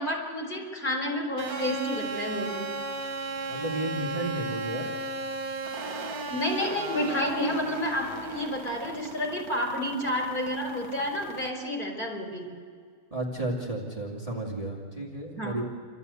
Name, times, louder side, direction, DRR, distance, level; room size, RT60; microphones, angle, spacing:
voice 1, 0.0-2.7 6.3-12.5 15.4-15.6, left 1 dB, 30° left, 0 dB, 4.2 m, -30 dB
sound 1, 1.4-11.5, right 3 dB, 80° right, 1.8 m, -36 dB
voice 2, 3.5-4.9 13.1-15.6, right 1 dB, 25° right, -4 dB, 2.4 m, -32 dB
29.5 x 13.0 x 8.3 m, 2.1 s
omnidirectional pair, 1.6 m